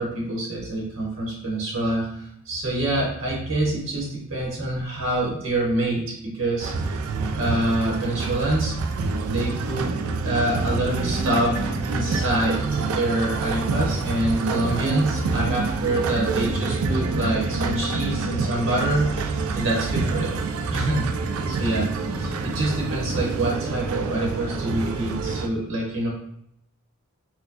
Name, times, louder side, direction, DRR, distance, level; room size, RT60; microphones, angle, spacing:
voice 1, 0.0-6.7 7.4-8.7 9.2-9.9 10.2-11.6 11.9-20.4 20.7-21.1 21.5-26.1, right 1 dB, 65° right, -3 dB, 1.0 m, -26 dB
sound 1, 6.6-25.5, right 3 dB, 90° right, 0.3 m, -27 dB
4.2 x 2.2 x 2.8 m, 0.73 s
head